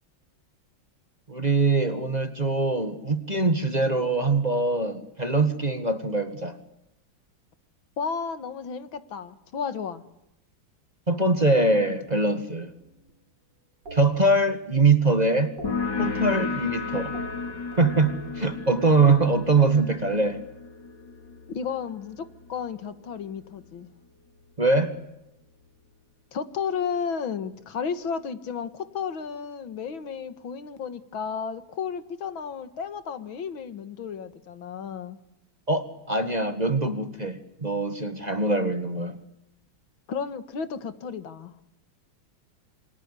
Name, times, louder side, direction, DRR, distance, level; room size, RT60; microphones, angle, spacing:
voice 1, 1.3-6.6 11.1-12.7 13.9-15.5 16.0-17.1 17.8-20.4 24.6-24.9 35.7-39.2, right 3 dB, 20° right, 9 dB, 1.6 m, -23 dB
voice 2, 8.0-10.0 21.5-23.9 26.3-35.2 40.1-41.5, left 6 dB, 75° left, 11 dB, 2.4 m, -33 dB
sound 1, 12.0-13.2 13.9-15.0 15.3-16.7 17.0-19.4 20.6-22.3, right 1 dB, 60° right, 4.4 m, -47 dB
sound 2, 15.6-22.9, left 4 dB, 60° left, 3.9 m, -33 dB
28.0 x 25.5 x 8.3 m, 0.86 s
omnidirectional pair, 2.2 m